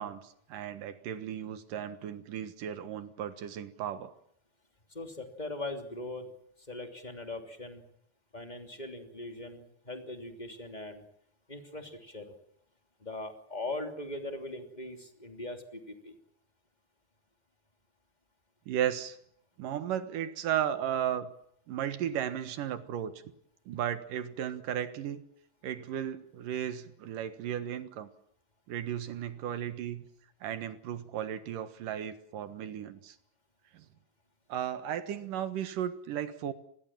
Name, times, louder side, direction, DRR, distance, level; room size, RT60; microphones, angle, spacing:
voice 1, 0.0-4.1 18.7-19.2 19.6-21.3 21.7-23.1 23.7-25.2 25.6-28.1 28.7-30.1 30.4-33.2 33.7-33.8 34.5-36.5, right 10 dB, 70° right, 11 dB, 3.0 m, -35 dB
voice 2, 4.9-6.2 6.6-7.8 8.3-11.0 11.5-12.4 13.0-16.2, left 2 dB, 15° left, 5 dB, 2.6 m, -40 dB
29.0 x 21.0 x 7.4 m, 0.70 s
omnidirectional pair, 4.0 m